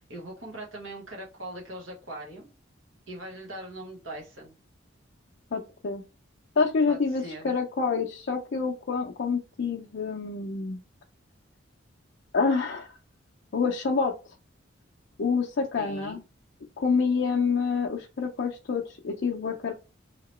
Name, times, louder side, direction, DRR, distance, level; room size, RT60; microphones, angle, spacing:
voice 1, 0.0-2.5 3.1-4.5 6.9-7.5 15.8-16.2, right 1 dB, 80° right, -1 dB, 1.2 m, -41 dB
voice 2, 5.5-6.0 6.6-10.8 12.3-12.9 13.5-14.1 15.2-16.2 16.8-19.7, left 5 dB, 60° left, 1 dB, 0.4 m, -27 dB
2.9 x 2.8 x 3.0 m, 0.29 s
head